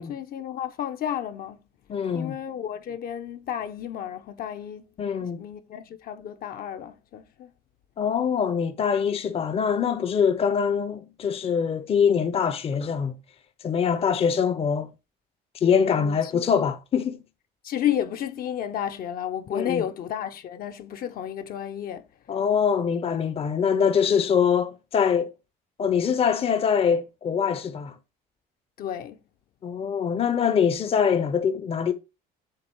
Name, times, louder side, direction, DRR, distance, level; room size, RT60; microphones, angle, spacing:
voice 1, 0.0-1.7 2.1-4.9 5.2-7.5 15.6-16.5 17.6-22.1 28.8-29.2, left 10 dB, 60° left, 0.9 m, -32 dB
voice 2, 1.9-2.4 5.0-5.4 8.0-13.2 13.6-14.9 15.5-17.2 19.5-19.8 22.3-25.3 25.8-27.9 29.6-31.9, left 7 dB, 35° left, 0.7 m, -23 dB
7.7 x 3.5 x 6.2 m
cardioid pair, 120°, 17 cm